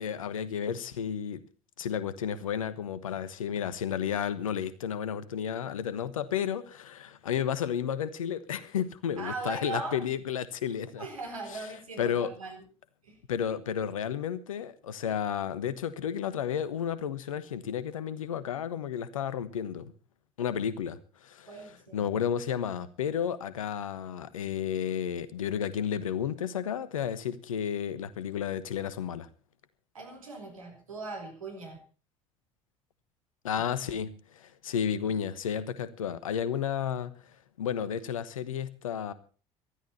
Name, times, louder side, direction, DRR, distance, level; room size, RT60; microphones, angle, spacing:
voice 1, 0.0-1.4 1.8-11.1 12.0-12.3 13.3-19.9 20.4-21.5 21.9-29.3 33.4-37.1 37.6-39.1, left 8 dB, 80° left, 1.2 m, -32 dB
voice 2, 9.2-10.0 11.0-12.6 13.0-13.2 21.5-22.2 29.9-31.8 33.5-33.6, right 3 dB, 85° right, 4.3 m, -39 dB
19.0 x 13.0 x 4.2 m
figure-of-eight pair, 55°, 17 cm